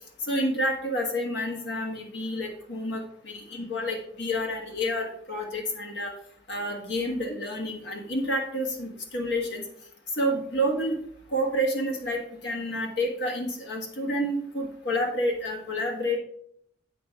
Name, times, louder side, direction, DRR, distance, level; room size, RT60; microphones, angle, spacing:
voice 1, 0.2-6.1 6.5-9.6 10.2-10.9 11.3-16.2, equal, 60° left, 1 dB, 1.4 m, -29 dB
7.9 x 6.1 x 3.6 m, 0.68 s
head